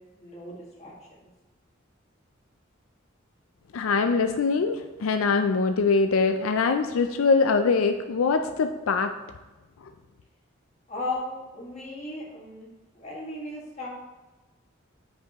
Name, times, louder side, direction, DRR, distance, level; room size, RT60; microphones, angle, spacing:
voice 1, 0.1-1.3 10.9-12.7 13.0-13.9, left 2 dB, 35° left, -4 dB, 1.8 m, -36 dB
voice 2, 3.7-9.1, left 4 dB, 90° left, 6 dB, 0.4 m, -23 dB
8.8 x 5.3 x 3.0 m, 1.1 s
head